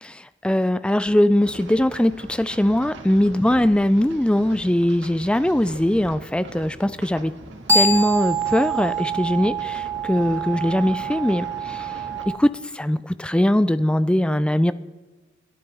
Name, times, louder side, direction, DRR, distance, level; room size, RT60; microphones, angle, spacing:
voice 1, 0.0-7.3 7.7-11.9 12.3-14.7, left 1 dB, 5° left, 14 dB, 0.3 m, -21 dB
sound 1, 1.4-12.3, right 2 dB, 65° right, 1.8 m, -41 dB
sound 2, 7.3-12.4, right 3 dB, 15° right, 1.5 m, -25 dB
21.5 x 11.0 x 3.5 m, 1.3 s
head